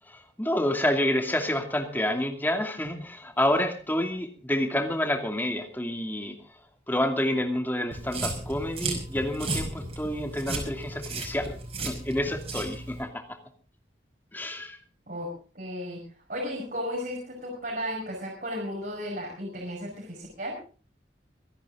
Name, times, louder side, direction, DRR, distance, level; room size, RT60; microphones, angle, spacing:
voice 1, 0.1-6.4 6.9-11.5 11.8-13.4 14.3-14.8, left 1 dB, 10° left, 4 dB, 2.5 m, -28 dB
sound 1, 7.9-13.0, right 2 dB, 35° right, 5.5 m, -34 dB
voice 2, 15.1-16.0 16.3-20.6, equal, 50° right, -3 dB, 6.1 m, -34 dB
25.0 x 11.0 x 3.9 m, 0.39 s
head